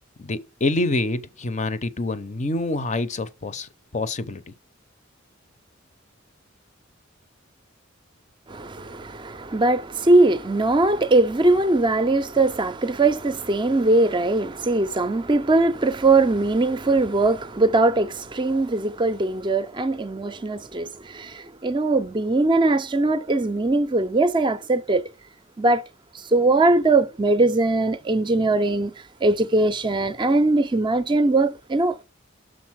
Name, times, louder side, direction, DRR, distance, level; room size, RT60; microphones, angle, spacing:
voice 1, 0.2-4.5, left 2 dB, 35° left, 0.6 m, -27 dB
voice 2, 8.5-25.1 25.6-25.8 26.1-28.9 29.2-32.0, right 2 dB, 25° right, 0.5 m, -21 dB
6.4 x 3.9 x 6.1 m
head